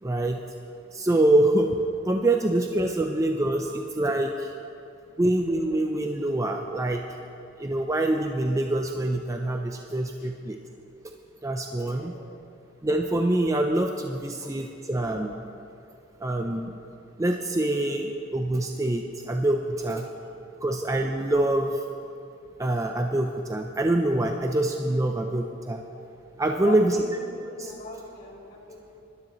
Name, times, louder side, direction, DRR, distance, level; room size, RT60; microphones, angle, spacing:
voice 1, 0.0-0.4 0.9-1.8 2.1-4.5 5.2-7.0 7.6-10.6 11.4-12.1 12.8-15.4 16.2-16.8 17.2-20.1 20.6-21.8 22.6-25.8 26.4-27.0 27.6-27.7, right 1 dB, 15° right, 3 dB, 0.5 m, -25 dB
voice 2, 11.7-12.2 12.6-12.7 14.3-14.5 16.9-17.2 20.5-20.6 22.2-22.4 26.5-29.0, left 2 dB, 45° left, -5 dB, 3.2 m, -43 dB
25.0 x 12.5 x 3.1 m, 2.7 s
head